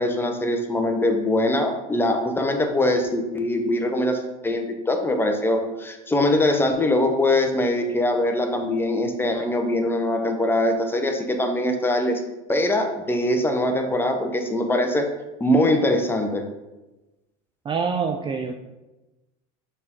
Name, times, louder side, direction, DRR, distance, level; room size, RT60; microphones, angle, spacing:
voice 1, 0.0-12.2 12.5-15.1 15.4-16.4, left 1 dB, 10° left, 4 dB, 0.8 m, -22 dB
voice 2, 17.6-18.5, right 5 dB, 25° right, 4 dB, 0.4 m, -25 dB
6.3 x 3.7 x 4.4 m, 1.1 s
supercardioid pair, 120°, 20 cm